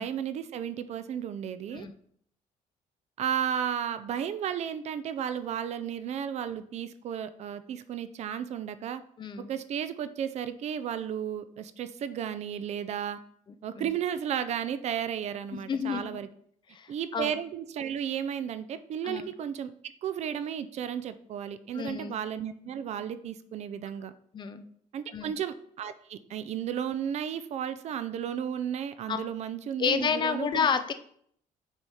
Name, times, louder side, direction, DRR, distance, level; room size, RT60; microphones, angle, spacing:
voice 1, 0.0-1.9 3.2-9.0 9.5-13.2 13.6-16.3 16.9-19.7 20.0-24.1 24.9-30.7, right 9 dB, 50° right, 12 dB, 0.4 m, -33 dB
voice 2, 9.2-9.5 13.7-13.9 15.5-16.0 16.7-17.3 19.0-19.2 21.7-22.2 24.3-24.6 25.1-25.3 29.1-29.2 29.8-30.9, left 6 dB, 35° left, 9 dB, 0.5 m, -30 dB
6.3 x 4.2 x 4.7 m, 0.63 s
cardioid pair, 160°, 14 cm